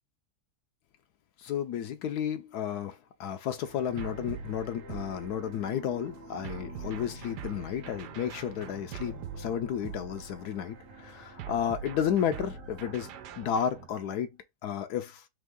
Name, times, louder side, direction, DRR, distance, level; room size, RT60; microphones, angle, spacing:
voice 1, 1.4-13.1 13.4-14.3 14.6-15.2, left 9 dB, 75° left, 1.1 m, -32 dB
sound 1, 3.6-14.2, right 2 dB, 45° right, 0.7 m, -50 dB
sound 2, 4.0-5.7 6.4-10.6 11.4-13.9, right 6 dB, 90° right, 1.2 m, -43 dB
3.6 x 3.0 x 3.5 m
omnidirectional pair, 1.7 m